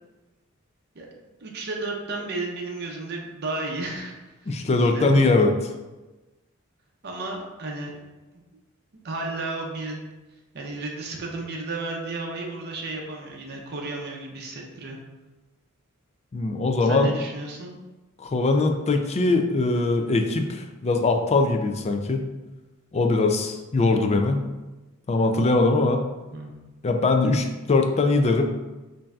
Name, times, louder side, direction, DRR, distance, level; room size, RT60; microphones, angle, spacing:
voice 1, 1.4-5.2 7.0-7.9 9.0-10.1 10.5-15.0 16.8-17.8 26.3-26.5, right 2 dB, 50° right, 0 dB, 0.6 m, -33 dB
voice 2, 4.5-5.5 16.3-17.1 18.2-22.2 22.9-24.5 25.1-26.0 26.8-28.5, left 3 dB, 30° left, 5 dB, 0.4 m, -21 dB
5.4 x 2.7 x 2.3 m, 1.1 s
head